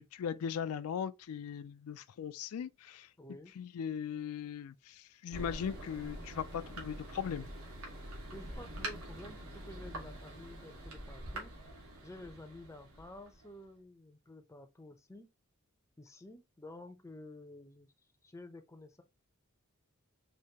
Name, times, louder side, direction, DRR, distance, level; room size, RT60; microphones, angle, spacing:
voice 1, 0.0-3.1 3.6-7.5, left 8 dB, 80° left, 0.3 m, -39 dB
voice 2, 3.2-3.5 8.3-11.5 12.0-15.3 16.0-17.9 18.2-19.0, left 1 dB, 15° left, 0.5 m, -51 dB
Thunder, 5.3-13.6, right 1 dB, 80° right, 1.6 m, -45 dB
4.6 x 2.8 x 2.8 m
head